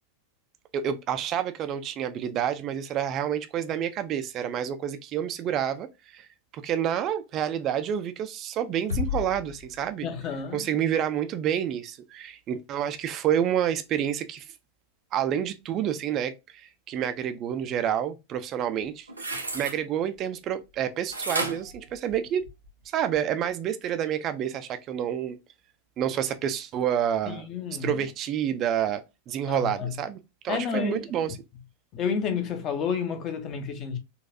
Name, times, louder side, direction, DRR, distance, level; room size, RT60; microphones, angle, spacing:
voice 1, 0.7-6.3 6.5-10.1 10.5-14.5 15.1-22.4 22.9-25.4 26.0-27.5 27.8-29.0 29.3-31.4, right 9 dB, 35° right, 0.3 m, -29 dB
sound 1, 8.9-10.5, left 8 dB, 75° left, 0.8 m, -33 dB
voice 2, 10.0-10.7 27.3-27.9 29.5-29.9 30.5-31.0 31.9-34.0, left 6 dB, 35° left, 0.7 m, -30 dB
sound 2, 18.8-19.8 21.1-22.7 23.1-23.2, right 2 dB, 80° right, 0.7 m, -33 dB
4.0 x 2.3 x 2.6 m
figure-of-eight pair, 90°, 0 cm